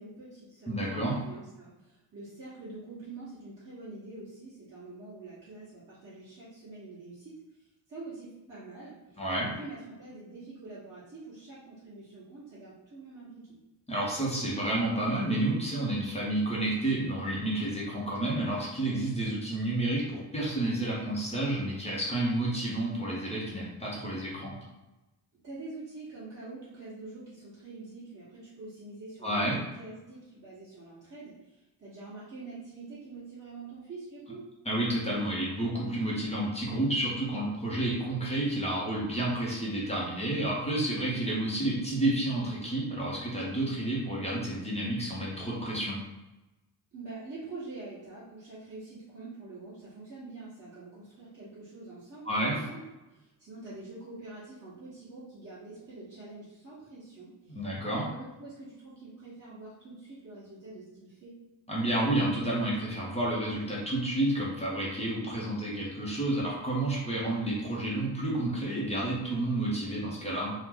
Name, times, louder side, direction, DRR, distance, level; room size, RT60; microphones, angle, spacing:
voice 1, 0.0-7.4 7.9-13.6 25.4-34.4 46.9-52.8 53.1-61.3, right 3 dB, 35° right, -12 dB, 1.2 m, -46 dB
voice 2, 0.7-1.2 9.2-9.5 13.9-24.5 29.2-29.6 34.7-46.0 52.2-52.6 57.5-58.1 61.7-70.5, right 1 dB, 15° left, -5 dB, 0.6 m, -30 dB
2.9 x 2.0 x 3.6 m, 1.0 s
wide cardioid pair, 165°, 43 cm